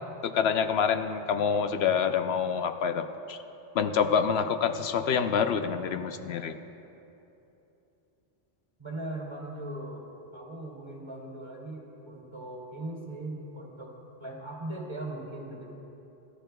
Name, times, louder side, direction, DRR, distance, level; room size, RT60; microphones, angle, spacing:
voice 1, 0.2-3.4 3.7-6.5, left 7 dB, 80° left, 8 dB, 0.9 m, -27 dB
voice 2, 8.8-10.0 10.3-13.9 14.2-15.7, right 1 dB, 25° right, -3 dB, 2.4 m, -39 dB
27.5 x 12.5 x 2.3 m, 3.0 s
omnidirectional pair, 1.0 m